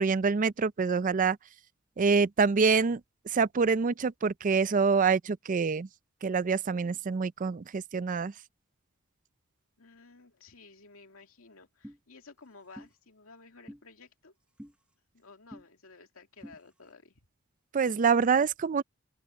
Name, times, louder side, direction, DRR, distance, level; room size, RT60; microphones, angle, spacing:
voice 1, 0.0-1.4 2.0-3.0 3.3-5.9 6.2-8.3 17.7-18.8, right 5 dB, 40° right, 0.4 m, -26 dB
voice 2, 9.8-14.3 15.1-17.2, left 4 dB, 75° left, 2.6 m, -54 dB
sound 1, 11.8-12.0 12.8-12.9 13.7-13.8 14.6-14.7 15.5-15.7 16.4-16.6, equal, 5° right, 0.8 m, -46 dB
open air
head